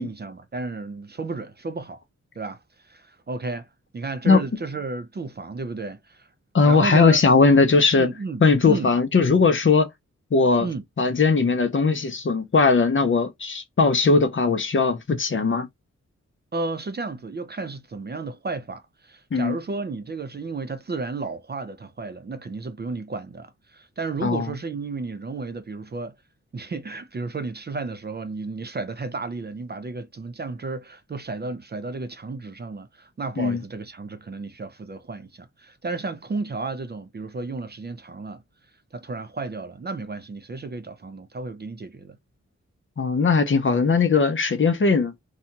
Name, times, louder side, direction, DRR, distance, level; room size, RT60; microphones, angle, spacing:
voice 1, 0.0-2.0 2.4-3.7 3.9-6.3 6.7-7.2 8.0-8.4 8.7-8.9 10.6-10.8 16.5-26.2 26.5-38.4 38.9-42.2, right 3 dB, 35° right, 0.5 m, -33 dB
voice 2, 6.5-8.1 8.4-9.9 10.3-10.7 11.0-15.7 19.3-19.6 24.2-24.5 33.4-33.6 43.0-45.1, left 4 dB, 45° left, 0.6 m, -19 dB
2.7 x 2.3 x 2.7 m
wide cardioid pair, 70°, 30 cm